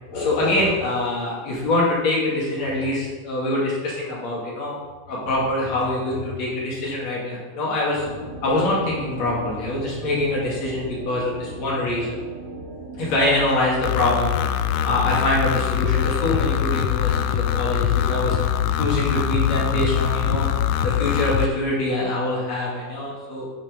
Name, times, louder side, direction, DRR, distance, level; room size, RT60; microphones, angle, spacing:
voice 1, 0.1-4.7 5.1-8.1 8.4-12.1 13.0-14.3 14.7-18.4 18.8-20.5 20.8-23.5, left 1 dB, 60° left, -5 dB, 3.6 m, -24 dB
sound 1, 8.0-13.2, right 1 dB, 85° right, 3.5 m, -37 dB
sound 2, 13.1-21.5, left 10 dB, 80° left, 1.6 m, -23 dB
9.1 x 5.7 x 5.2 m, 1.4 s
omnidirectional pair, 3.4 m